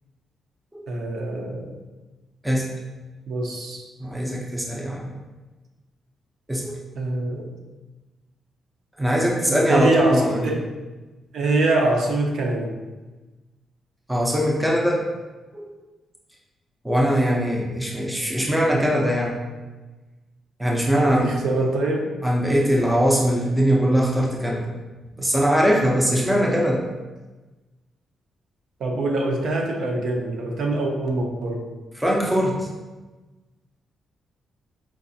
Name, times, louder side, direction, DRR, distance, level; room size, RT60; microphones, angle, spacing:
voice 1, 0.9-1.8 3.3-3.9 6.9-7.5 9.5-10.7 11.3-12.8 20.9-22.1 28.8-31.7, right 2 dB, 60° right, 1 dB, 0.5 m, -24 dB
voice 2, 4.0-5.1 6.5-6.8 9.0-10.5 14.1-15.0 15.5-15.7 16.8-19.4 20.6-21.3 22.2-24.7 25.2-26.9 32.0-32.7, equal, 5° right, -2 dB, 0.4 m, -21 dB
4.6 x 2.4 x 2.6 m, 1.2 s
wide cardioid pair, 175°, 0 cm